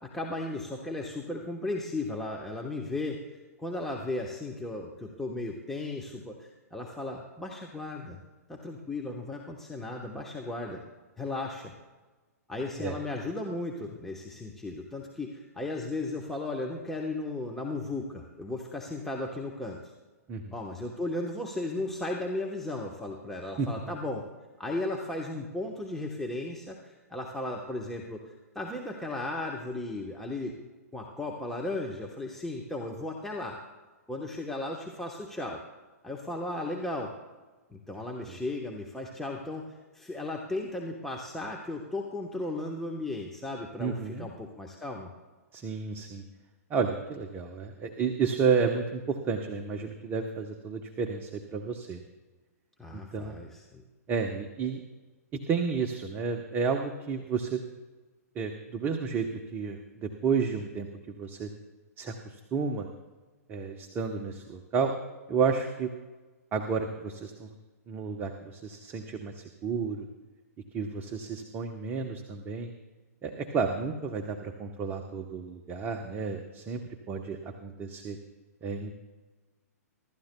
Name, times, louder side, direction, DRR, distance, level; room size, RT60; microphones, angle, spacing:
voice 1, 0.0-3.2 3.6-8.2 8.5-10.8 11.2-11.7 12.5-19.9 20.5-24.2 24.6-30.6 30.9-33.6 34.1-35.6 36.0-37.1 37.7-45.1 52.8-53.8, left 2 dB, 5° left, -1 dB, 1.1 m, -35 dB
voice 2, 43.8-44.3 45.5-46.2 46.7-52.0 52.9-53.3 54.1-54.8 55.5-57.6 58.3-60.9 61.2-61.5 62.0-62.9 63.5-64.9 65.3-65.9 66.5-67.5 67.9-70.1 70.7-72.7 73.2-76.8 77.1-78.2 78.6-78.9, right 5 dB, 25° right, 4 dB, 1.0 m, -31 dB
25.5 x 13.0 x 2.3 m, 1.3 s
hypercardioid pair, 125°, 9 cm